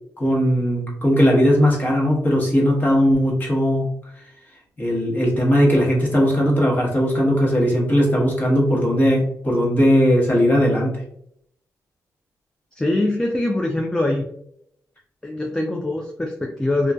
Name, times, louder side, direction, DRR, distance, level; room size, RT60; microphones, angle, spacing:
voice 1, 0.2-3.9 4.8-11.0, equal, 25° left, -4 dB, 1.0 m, -18 dB
voice 2, 12.7-14.3 15.2-16.9, left 2 dB, 10° left, 2 dB, 0.3 m, -23 dB
2.5 x 2.2 x 2.2 m, 0.73 s
cardioid pair, 80°, 7 cm